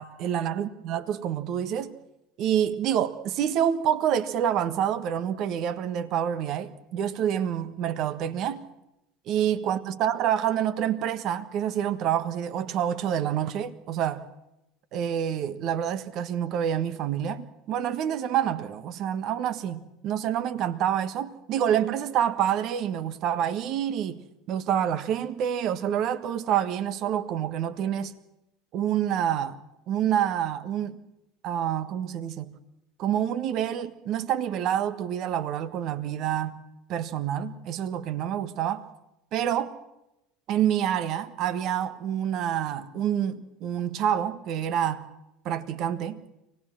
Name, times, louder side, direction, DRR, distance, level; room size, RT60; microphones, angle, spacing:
voice 1, 0.0-1.9 2.4-8.6 9.3-14.2 14.9-28.1 28.7-29.6 29.9-31.0 31.4-32.5 33.0-36.5 36.9-38.8 39.3-39.8 40.5-45.0 45.4-46.2, right 10 dB, 55° right, 1.5 m, -27 dB
24.5 x 19.0 x 6.2 m
hypercardioid pair, 75°, 0 cm